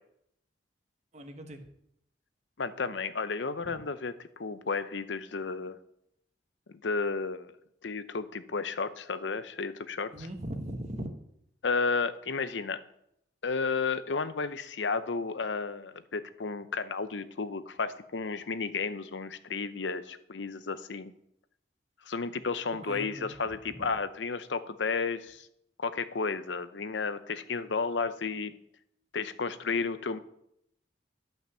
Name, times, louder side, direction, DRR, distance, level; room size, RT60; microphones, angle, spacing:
voice 1, 1.1-1.6 10.1-11.1 22.9-23.3 23.7-23.9, right 1 dB, 40° right, 6 dB, 1.2 m, -39 dB
voice 2, 2.6-5.8 6.7-7.6 7.8-10.3 11.6-12.8 13.4-21.1 22.1-25.5 25.8-28.6 29.1-30.2, left 4 dB, 80° left, 13 dB, 0.7 m, -32 dB
12.0 x 5.8 x 7.0 m, 0.75 s
head